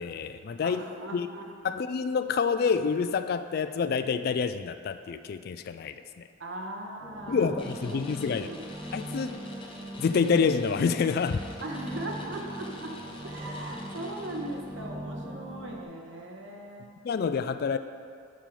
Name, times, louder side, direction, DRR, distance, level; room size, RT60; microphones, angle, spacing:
voice 1, 0.0-0.8 1.1-1.3 1.6-6.3 7.3-8.5 8.9-9.4 10.0-11.4 17.0-17.8, left 5 dB, 50° left, 11 dB, 0.3 m, -27 dB
voice 2, 0.6-1.7 6.4-8.0 8.3-8.7 11.6-12.9 13.2-16.9, right 1 dB, 70° right, 1 dB, 1.0 m, -39 dB
sound 1, 7.0-15.8, right 1 dB, 10° right, 0.5 m, -40 dB
sound 2, 7.6-14.8, left 2 dB, 25° left, 0.7 m, -48 dB
7.4 x 5.1 x 5.7 m, 2.3 s
head